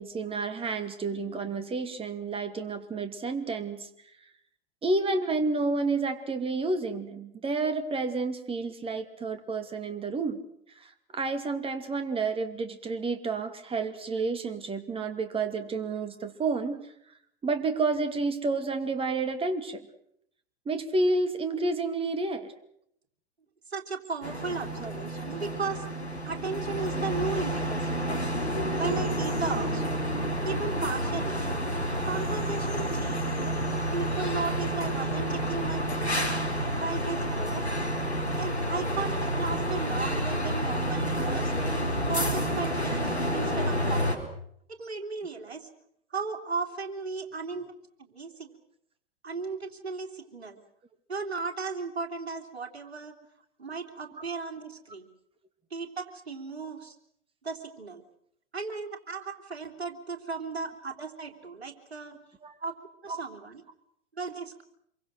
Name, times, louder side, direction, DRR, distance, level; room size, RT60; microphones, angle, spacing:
voice 1, 0.0-3.9 4.8-10.4 10.8-16.8 17.4-19.8 20.7-22.5 62.4-62.6 63.1-63.2, right 3 dB, 15° right, 9 dB, 2.6 m, -30 dB
voice 2, 23.7-25.8 26.2-28.1 28.7-29.8 30.4-31.5 32.0-33.6 33.9-36.3 36.7-37.6 38.4-41.5 42.1-44.2 44.7-45.7 46.1-47.6 48.0-48.5 49.2-50.6 51.1-53.1 53.6-55.1 55.7-57.0 57.4-58.0 58.5-62.1 62.6-62.7 63.0-63.6 64.1-64.6, right 4 dB, 80° right, 5 dB, 3.3 m, -35 dB
sound 1, 24.2-44.2, equal, 85° left, 4.0 m, -29 dB
26.5 x 23.5 x 6.5 m, 0.70 s
figure-of-eight pair, 95°, 32 cm